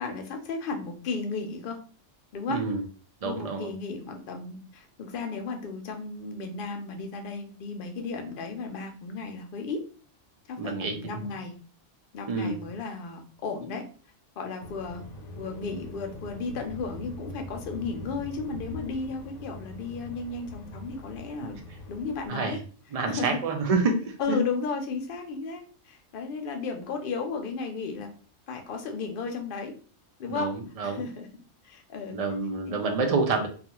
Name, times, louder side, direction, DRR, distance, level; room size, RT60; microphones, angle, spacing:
voice 1, 0.0-1.8 2.3-2.6 3.2-9.8 10.5-11.6 12.1-13.9 14.4-15.0 15.4-21.6 21.9-22.6 23.1-23.4 24.2-28.1 28.5-29.7 30.2-30.5 30.8-31.3 31.6-32.2 32.7-32.8, left 4 dB, 55° left, 4 dB, 0.6 m, -34 dB
voice 2, 2.5-2.8 3.2-3.7 10.6-11.2 12.3-12.6 22.3-22.6 22.9-24.4 30.3-31.0 32.1-33.5, right 4 dB, 75° right, 3 dB, 0.3 m, -28 dB
sound 1, 14.6-22.3, left 1 dB, 75° left, 1.0 m, -43 dB
2.4 x 2.3 x 2.8 m, 0.39 s
omnidirectional pair, 1.3 m